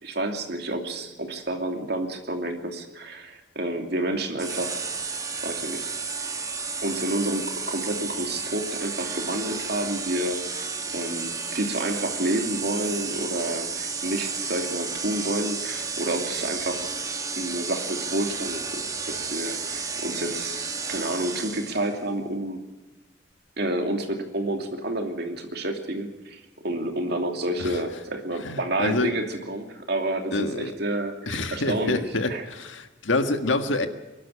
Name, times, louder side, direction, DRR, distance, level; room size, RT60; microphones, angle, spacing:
voice 1, 0.0-4.8 5.4-5.9 6.8-16.9 17.3-22.6 23.6-32.5, right 1 dB, 60° right, 4 dB, 2.8 m, -29 dB
sound 1, 4.4-22.0, right 4 dB, 20° right, 1.3 m, -32 dB
voice 2, 28.4-29.1 30.3-30.7 31.3-33.9, left 2 dB, 90° left, 7 dB, 1.7 m, -27 dB
23.5 x 12.0 x 10.0 m, 1.1 s
head